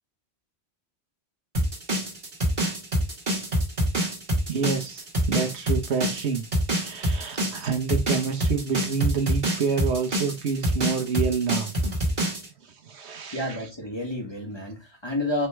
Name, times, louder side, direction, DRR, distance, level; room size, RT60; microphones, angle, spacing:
sound 1, 1.5-12.5, right 1 dB, 45° right, 1.6 m, -26 dB
voice 1, 4.5-6.5 6.7-11.7 12.6-13.6, right 5 dB, 75° right, 1.2 m, -28 dB
voice 2, 13.3-15.5, left 1 dB, 25° left, 1.2 m, -30 dB
4.5 x 3.1 x 3.3 m
omnidirectional pair, 1.1 m